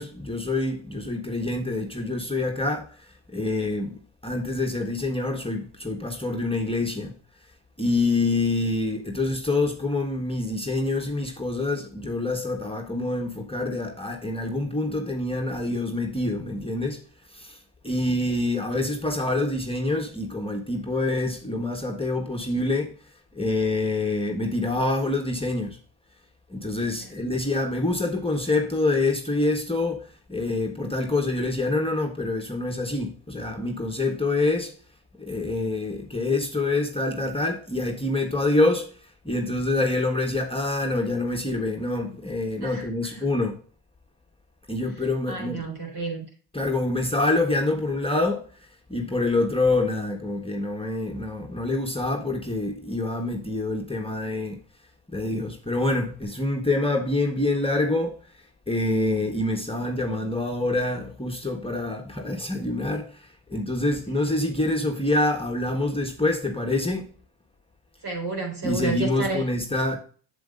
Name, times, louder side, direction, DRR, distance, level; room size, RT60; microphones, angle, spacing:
voice 1, 0.0-2.9 3.3-7.2 7.8-17.0 17.3-17.6 17.8-22.9 23.3-25.8 26.5-34.7 35.2-38.9 39.2-43.6 44.7-45.6 46.5-48.4 48.9-54.6 55.1-58.2 58.7-67.1 68.6-70.0, left 2 dB, 10° left, 1.3 m, -26 dB
voice 2, 42.6-43.3 45.3-46.2 68.0-69.4, right 3 dB, 50° right, 4.0 m, -31 dB
7.7 x 7.6 x 2.5 m
hypercardioid pair, 45°, 49 cm